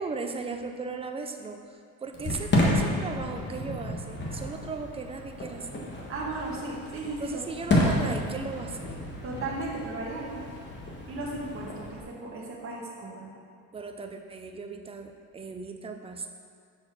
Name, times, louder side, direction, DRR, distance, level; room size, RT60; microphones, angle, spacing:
voice 1, 0.0-5.8 7.2-8.9 13.7-16.3, right 4 dB, 15° right, 5 dB, 0.4 m, -37 dB
Fireworks, 2.1-12.0, left 1 dB, 25° left, 1.4 m, -31 dB
voice 2, 6.1-7.4 9.2-10.4 11.1-13.3, right 2 dB, 35° right, -4 dB, 1.4 m, -35 dB
6.7 x 4.3 x 6.0 m, 2.3 s
cardioid pair, 125°, 40 cm